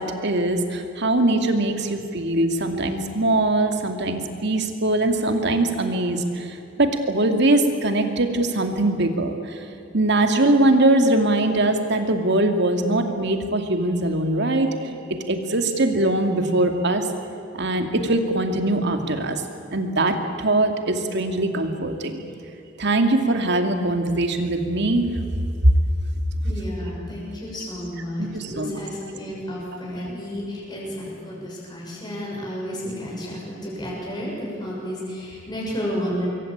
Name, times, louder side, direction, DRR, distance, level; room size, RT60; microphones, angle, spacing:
voice 1, 0.0-9.6 9.9-14.8 15.1-17.1 17.5-19.4 19.7-22.2 22.8-25.1 25.6-25.7 26.8-26.9 28.2-29.1, right 2 dB, 60° right, 5 dB, 2.5 m, -22 dB
voice 2, 26.4-36.3, equal, 20° left, -4 dB, 6.6 m, -31 dB
25.0 x 23.0 x 8.8 m, 2.7 s
head